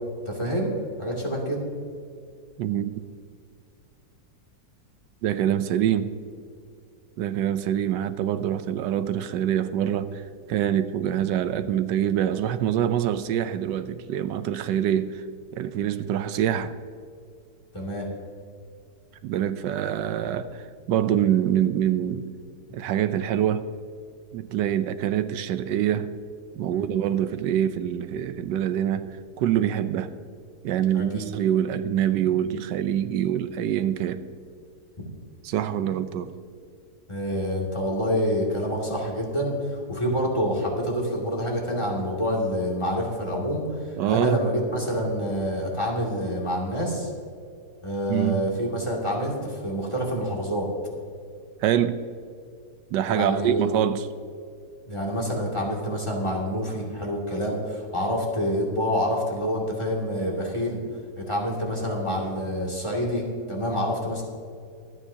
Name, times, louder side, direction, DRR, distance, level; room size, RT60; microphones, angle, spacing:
voice 1, 0.3-1.6 17.7-18.1 26.7-26.9 30.9-31.3 37.1-43.6 44.1-47.1 47.8-50.7 53.1-53.7 54.8-60.8 61.2-64.2, equal, 15° left, 2.5 m, -27 dB
voice 2, 2.6-2.9 5.2-6.1 7.2-10.2 10.5-15.2 15.5-16.8 19.2-22.2 22.7-23.7 24.3-26.1 26.6-30.1 30.6-34.2 35.4-36.3 44.0-44.4 48.1-48.4 51.6-52.0 52.9-54.1, right 10 dB, 90° right, 1.3 m, -25 dB
24.0 x 9.3 x 2.8 m
omnidirectional pair, 1.9 m